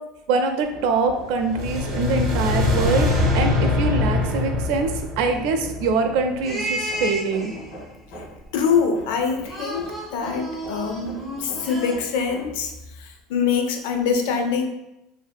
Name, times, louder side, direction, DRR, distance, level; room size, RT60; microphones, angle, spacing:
voice 1, 0.3-3.1 3.3-4.9 5.2-7.5, right 4 dB, 65° right, 5 dB, 0.3 m, -23 dB
Hammer, 0.6-12.7, equal, 70° left, 0.8 m, -43 dB
sound 1, 1.3-6.5, left 2 dB, 45° right, 0.7 m, -23 dB
sound 2, 5.2-5.7 6.4-7.9 9.4-12.0, right 1 dB, 10° right, 0.5 m, -32 dB
voice 2, 8.5-14.6, left 6 dB, 85° left, 5 dB, 0.4 m, -24 dB
2.6 x 2.5 x 2.2 m, 0.90 s
cardioid pair, 180°, 0 cm